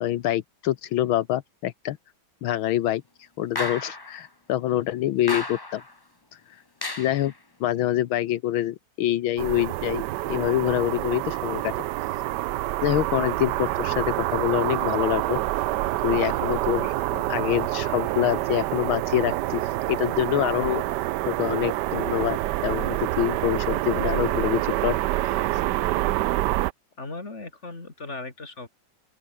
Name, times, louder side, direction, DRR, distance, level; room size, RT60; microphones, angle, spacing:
voice 1, 0.0-2.0 2.4-3.0 3.4-5.8 6.3-6.6 7.0-7.3 7.6-11.7 12.8-15.4 16.0-20.8 21.3-25.0 25.5-25.6, left 13 dB, 80° left, 1.7 m, -26 dB
sound 1, 3.5-4.2 5.3-5.9 6.8-7.3, left 2 dB, 15° left, 0.9 m, -32 dB
sound 2, 9.4-26.7, right 16 dB, 75° right, 1.0 m, -27 dB
voice 2, 27.0-28.7, left 3 dB, 35° left, 3.8 m, -37 dB
open air
omnidirectional pair, 2.2 m